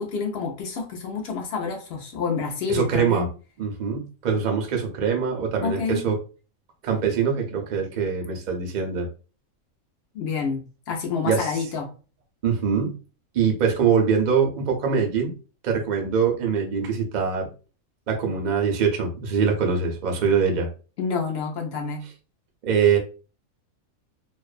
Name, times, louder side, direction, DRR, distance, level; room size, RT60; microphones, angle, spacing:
voice 1, 0.0-3.3 5.6-6.0 10.1-11.9 21.0-22.0, left 5 dB, 65° left, 2 dB, 0.7 m, -28 dB
voice 2, 2.7-3.3 3.6-6.1 6.8-9.1 11.2-11.5 12.4-12.9 13.3-15.3 15.6-17.5 18.1-20.7 22.6-23.0, right 6 dB, 60° right, 2 dB, 0.5 m, -23 dB
2.5 x 2.1 x 2.4 m, 0.35 s
omnidirectional pair, 1.5 m